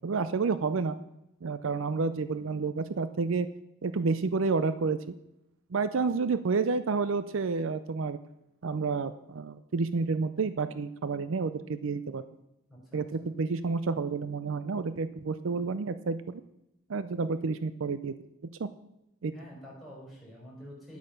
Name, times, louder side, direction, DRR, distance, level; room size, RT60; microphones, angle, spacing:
voice 1, 0.0-1.0 1.4-3.5 3.8-5.1 5.7-8.2 8.6-12.2 12.9-16.4 16.9-18.1 18.6-18.7 19.2-19.3, right 4 dB, 70° right, 13 dB, 0.5 m, -30 dB
voice 2, 12.7-13.0 19.3-21.0, equal, ahead, -5 dB, 5.1 m, -47 dB
11.0 x 8.4 x 6.6 m, 0.86 s
head